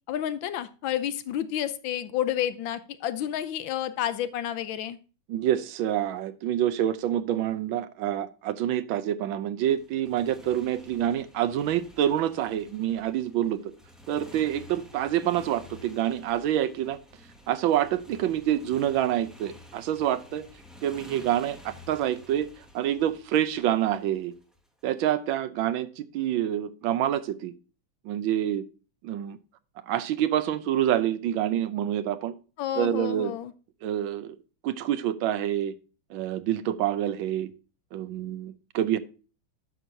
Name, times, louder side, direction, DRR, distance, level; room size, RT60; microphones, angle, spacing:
voice 1, 0.1-5.0 32.6-33.5, left 11 dB, 75° left, 1.3 m, -30 dB
voice 2, 5.3-13.6 14.1-17.0 17.5-20.4 20.8-22.5 22.7-24.3 24.8-27.5 28.0-28.6 29.0-29.4 29.9-32.3 32.8-33.3 33.8-34.3 34.6-35.7 36.1-37.5 37.9-39.0, right 11 dB, 75° right, 1.4 m, -27 dB
Motorcycle, 9.7-24.8, left 1 dB, ahead, 0.9 m, -51 dB
10.0 x 6.2 x 2.6 m
omnidirectional pair, 2.3 m